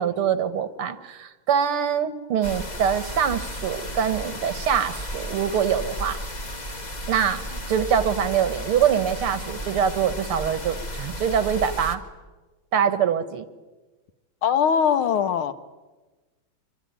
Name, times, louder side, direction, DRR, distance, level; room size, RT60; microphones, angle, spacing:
voice 1, 0.0-6.2 7.1-12.0 12.7-13.5, right 8 dB, 85° right, 13 dB, 2.3 m, -24 dB
sound 1, 2.4-12.0, equal, 20° left, 1.6 m, -34 dB
voice 2, 14.4-15.5, left 8 dB, 75° left, 10 dB, 2.1 m, -21 dB
26.0 x 24.5 x 9.4 m, 1.2 s
omnidirectional pair, 2.4 m